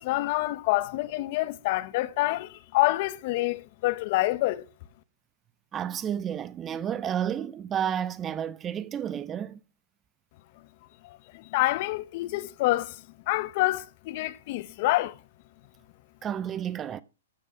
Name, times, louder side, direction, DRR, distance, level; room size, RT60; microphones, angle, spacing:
voice 1, 0.0-4.6 11.0-13.0 13.3-15.1, left 18 dB, 45° left, 0.7 m, -27 dB
voice 2, 5.7-9.6 16.2-17.0, right 9 dB, 20° right, 0.4 m, -31 dB
14.0 x 5.5 x 4.9 m
hypercardioid pair, 140°, 0 cm